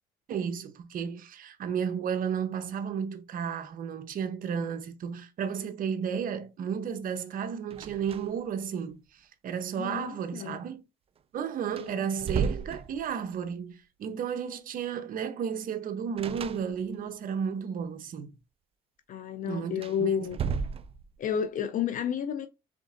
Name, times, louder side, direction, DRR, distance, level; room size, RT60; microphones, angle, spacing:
voice 1, 0.3-10.8 11.3-18.3 19.5-20.1, right 7 dB, 55° right, 0.9 m, -33 dB
sound 1, 7.7-8.5 8.8-8.9 11.2-11.3 11.7-13.4 16.2-17.1 19.7-21.3, right 6 dB, 35° right, 0.4 m, -34 dB
voice 2, 9.8-10.6 11.8-12.1 19.1-20.4 21.2-22.5, left 8 dB, 50° left, 0.5 m, -31 dB
5.1 x 3.6 x 2.5 m
cardioid pair, 110°, 17 cm